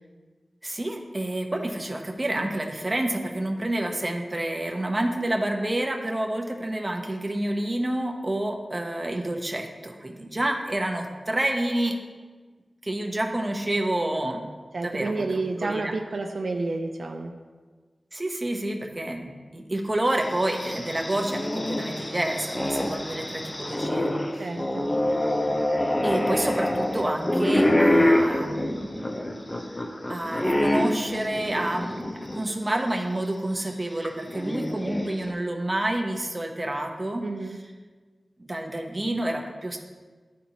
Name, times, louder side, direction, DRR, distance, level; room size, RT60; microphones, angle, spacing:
voice 1, 0.6-12.0 12.8-14.5 14.8-15.9 18.1-24.5 26.0-29.4 30.1-37.3 38.4-39.8, right 1 dB, 25° right, 2 dB, 0.8 m, -29 dB
voice 2, 14.7-17.4 24.4-25.0 37.2-37.6, right 3 dB, 70° right, 3 dB, 0.5 m, -30 dB
sound 1, 20.2-32.5 32.9-33.0 34.0-35.3, left 1 dB, 25° left, 0.6 m, -26 dB
11.5 x 4.2 x 2.9 m, 1.4 s
wide cardioid pair, 70°, 0 cm